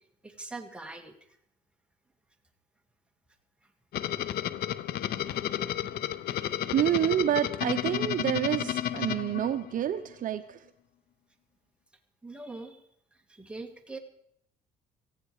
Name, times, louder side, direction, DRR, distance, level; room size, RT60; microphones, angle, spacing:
voice 1, 0.2-1.3 3.6-3.7 4.3-4.4 6.3-6.7 12.2-12.8 13.1-14.0, right 3 dB, 5° right, 4 dB, 2.3 m, -43 dB
sound 1, 3.9-10.0, left 11 dB, 65° left, 0.8 m, -32 dB
voice 2, 6.7-10.6, right 11 dB, 55° right, 9 dB, 0.8 m, -28 dB
18.5 x 15.0 x 4.8 m, 0.71 s
cardioid pair, 110°, 17 cm